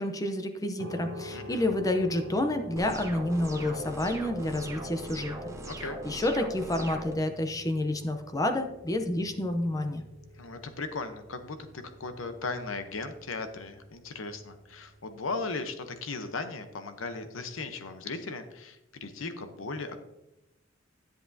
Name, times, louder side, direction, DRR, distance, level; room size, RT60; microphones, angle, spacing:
voice 1, 0.0-5.5 6.0-10.0, left 1 dB, 20° left, 6 dB, 0.7 m, -29 dB
sound 1, 0.8-15.5, equal, 65° right, 1.1 m, -48 dB
voice 2, 1.3-1.6 5.7-6.0 10.4-20.0, left 3 dB, 80° left, 9 dB, 0.9 m, -37 dB
sound 2, 2.8-7.1, right 2 dB, 15° right, 0.9 m, -40 dB
10.5 x 8.0 x 2.7 m, 0.92 s
head